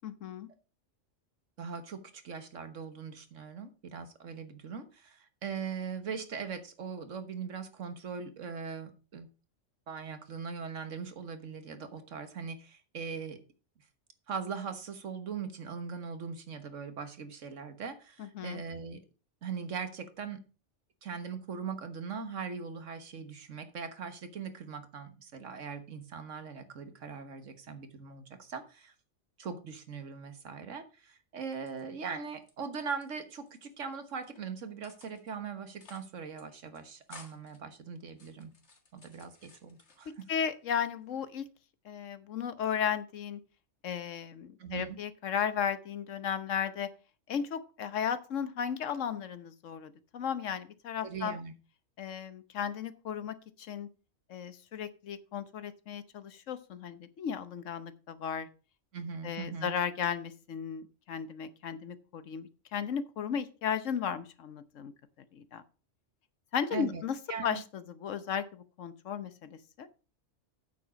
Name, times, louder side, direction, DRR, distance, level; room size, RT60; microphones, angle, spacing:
voice 1, 0.0-0.5 18.2-18.6 40.3-41.4 41.8-43.4 43.8-46.9 47.3-51.4 52.0-53.9 54.3-58.5 59.2-64.9 65.3-65.6 66.5-67.2 67.4-69.9, left 8 dB, 80° left, 13 dB, 1.3 m, -35 dB
voice 2, 1.6-9.3 9.9-13.4 14.3-19.0 19.4-20.4 21.0-28.9 29.4-38.5 38.9-40.1 44.6-45.0 51.0-51.5 58.9-59.8 66.7-67.0 67.3-67.6, right 6 dB, 80° right, 9 dB, 1.7 m, -40 dB
sound 1, 31.5-32.5 32.8-33.7 34.1-34.4 34.8-35.3 35.7-36.1 36.4-36.5 36.7-37.6 38.1-40.3 40.7-41.3, left 3 dB, 60° left, 2.0 m, -56 dB
9.1 x 7.3 x 5.1 m, 0.34 s
omnidirectional pair, 1.3 m